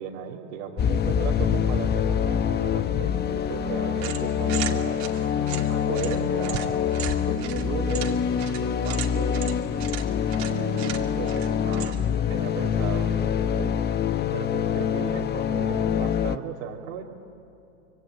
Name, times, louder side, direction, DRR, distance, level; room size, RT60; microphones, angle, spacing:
voice 1, 0.0-5.0 5.7-8.2 8.6-9.5 10.4-12.0 12.3-13.7 14.3-17.0, right 9 dB, 65° right, -5 dB, 2.8 m, -36 dB
sound 1, 0.8-16.4, left 8 dB, 25° left, 0.9 m, -25 dB
sound 2, 3.9-12.2, right 8 dB, 40° right, 2.4 m, -37 dB
26.0 x 23.5 x 9.2 m, 2.8 s
hypercardioid pair, 110°, 41 cm